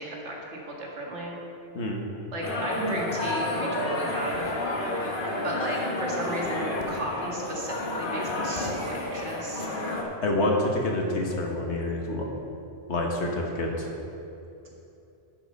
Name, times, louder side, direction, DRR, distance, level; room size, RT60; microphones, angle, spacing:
voice 1, 0.0-1.4 2.3-4.4 5.4-9.7, right 1 dB, 90° right, -2 dB, 2.0 m, -34 dB
sound 1, 2.4-10.0, left 2 dB, 50° left, 1.3 m, -30 dB
voice 2, 10.2-12.2 12.9-13.9, left 1 dB, 80° left, 0 dB, 1.6 m, -27 dB
10.5 x 6.2 x 5.3 m, 2.8 s
omnidirectional pair, 1.1 m